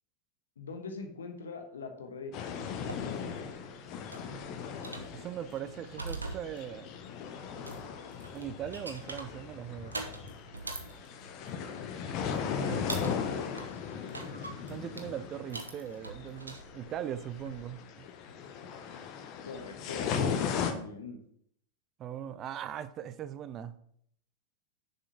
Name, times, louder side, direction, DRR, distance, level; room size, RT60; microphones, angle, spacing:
voice 1, 0.6-2.9 12.4-14.0 19.4-21.2, left 4 dB, 70° left, 1.3 m, -44 dB
sound 1, 2.3-20.7, left 7 dB, 40° left, 0.9 m, -38 dB
sound 2, 2.6-17.6, right 3 dB, 80° right, 1.0 m, -45 dB
voice 2, 5.1-6.9 8.3-10.0 12.6-12.8 14.7-18.1 22.0-23.7, right 10 dB, 30° right, 0.5 m, -40 dB
6.9 x 5.5 x 5.8 m
figure-of-eight pair, 90°, 0 cm